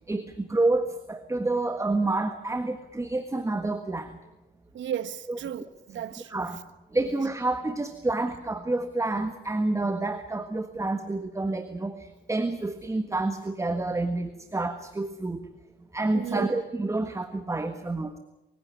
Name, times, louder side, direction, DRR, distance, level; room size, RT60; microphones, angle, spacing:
voice 1, 0.1-4.2 5.3-5.4 6.3-6.6 6.9-15.4 15.9-18.2, right 2 dB, 15° right, 1.5 m, -28 dB
voice 2, 4.7-6.5 16.1-16.5, right 9 dB, 70° right, 1.3 m, -35 dB
25.0 x 16.0 x 9.8 m
cardioid pair, 90°, 20 cm